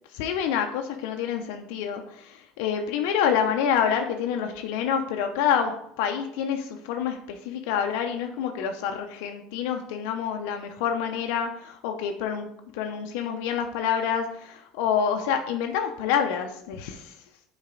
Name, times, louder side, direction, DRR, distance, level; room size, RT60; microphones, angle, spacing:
voice 1, 0.1-12.5 12.7-17.1, left 8 dB, 80° left, 5 dB, 0.5 m, -27 dB
6.4 x 4.0 x 3.8 m, 0.74 s
supercardioid pair, 100°, 0 cm